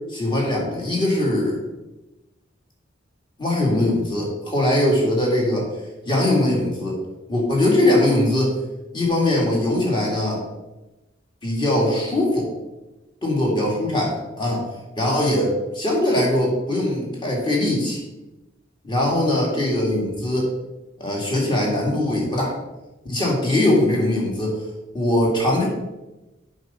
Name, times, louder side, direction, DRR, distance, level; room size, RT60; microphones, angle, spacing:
voice 1, 0.1-1.6 3.4-5.7 6.1-7.0 7.3-8.5 8.9-10.4 11.4-12.5 13.2-14.6 15.0-18.0 18.8-20.5 21.0-22.6 23.0-24.6 24.9-25.7, left 1 dB, 25° left, -2 dB, 2.1 m, -21 dB
7.9 x 5.5 x 4.2 m, 1.0 s
head